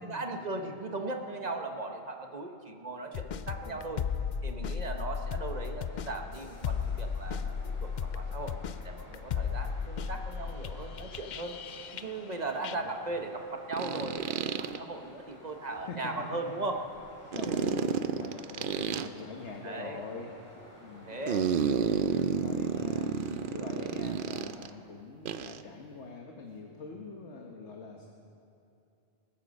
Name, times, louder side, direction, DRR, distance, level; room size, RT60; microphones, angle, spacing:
voice 1, 0.0-4.0 4.4-8.5 8.8-11.6 11.9-16.8 17.5-17.6 19.6-20.0 21.1-21.5, right 2 dB, 40° right, 4 dB, 1.1 m, -38 dB
sound 1, 3.1-12.3 12.6-12.8, left 6 dB, 55° left, 0.5 m, -35 dB
sound 2, 5.1-24.6, equal, 15° left, 3.5 m, -53 dB
sound 3, 11.1-11.2 13.7-14.8 17.3-19.1 21.3-24.7 25.2-25.6, right 7 dB, 60° right, 0.6 m, -31 dB
voice 2, 17.3-21.2 22.3-28.1, left 4 dB, 70° left, 1 dB, 1.5 m, -44 dB
20.0 x 13.5 x 5.3 m, 2.7 s
omnidirectional pair, 1.2 m